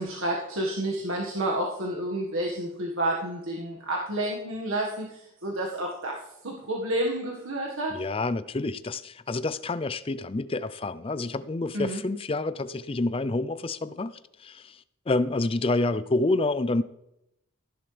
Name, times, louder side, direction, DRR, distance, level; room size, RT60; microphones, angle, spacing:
voice 1, 0.0-6.2 6.4-7.9 11.7-12.0, right 1 dB, 65° right, 1.7 m, -30 dB
voice 2, 7.9-14.1 14.4-16.8, left 2 dB, 25° left, 0.4 m, -28 dB
16.0 x 11.0 x 3.4 m
head